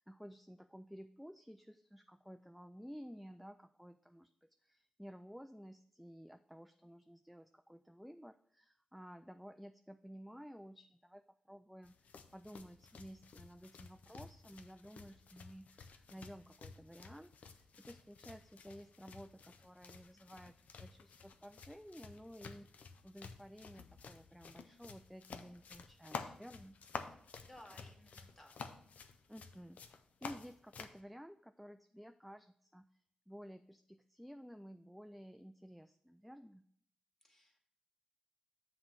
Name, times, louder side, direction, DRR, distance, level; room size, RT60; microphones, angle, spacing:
voice 1, 0.0-26.8 29.3-29.8 30.2-32.9 33.3-36.6, equal, ahead, 8 dB, 0.3 m, -54 dB
sound 1, 11.8-31.0, left 5 dB, 80° left, 0.5 m, -52 dB
voice 2, 27.4-28.5 37.2-37.6, left 1 dB, 20° left, 2 dB, 1.7 m, -58 dB
7.4 x 3.9 x 5.9 m, 0.63 s
cardioid pair, 65°, 2 cm